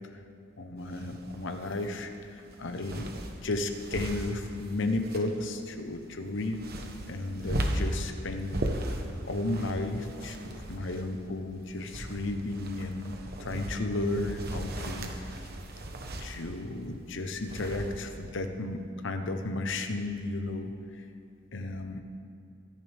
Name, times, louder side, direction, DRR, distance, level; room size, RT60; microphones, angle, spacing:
voice 1, 0.6-3.1 3.4-6.7 7.1-8.9 9.3-15.1 16.2-20.7 21.0-21.1 21.5-22.0, left 2 dB, 65° left, 6 dB, 1.0 m, -34 dB
sound 1, 0.8-18.3, right 1 dB, 50° right, 1.2 m, -38 dB
23.5 x 11.0 x 3.6 m, 2.4 s
head